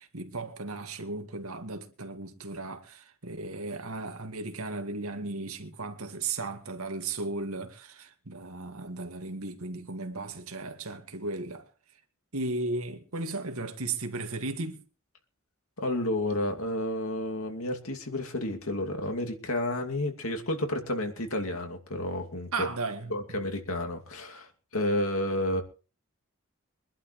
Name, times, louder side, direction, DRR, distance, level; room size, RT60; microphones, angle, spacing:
voice 1, 0.0-11.7 12.3-14.8 22.5-23.4, right 3 dB, 85° right, 2.1 m, -35 dB
voice 2, 15.8-22.7 23.1-25.6, left 1 dB, 80° left, 2.5 m, -31 dB
24.0 x 11.5 x 3.2 m
head